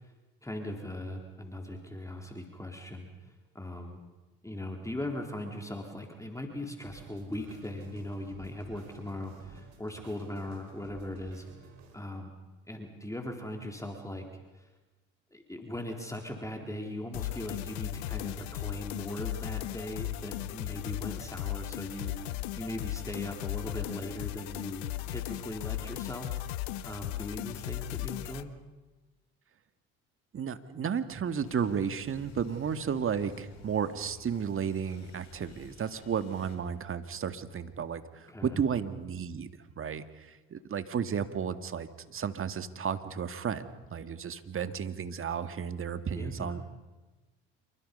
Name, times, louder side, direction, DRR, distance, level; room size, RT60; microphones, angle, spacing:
voice 1, 0.4-3.1 3.5-4.0 4.4-11.4 11.9-12.3 12.7-14.2 14.5-14.7 15.3-26.4 26.8-28.5 38.3-38.6 46.1-46.6, left 1 dB, 10° left, 2 dB, 4.0 m, -39 dB
sound 1, 6.8-11.9, right 6 dB, 65° right, 5.0 m, -53 dB
sound 2, 17.1-28.4, left 15 dB, 85° left, 0.9 m, -37 dB
voice 2, 30.3-39.5 39.8-46.7, right 7 dB, 45° right, 10 dB, 1.9 m, -33 dB
sound 3, 31.3-36.6, left 5 dB, 60° left, 6.6 m, -54 dB
28.0 x 24.0 x 5.5 m, 1.2 s
hypercardioid pair, 65°, 31 cm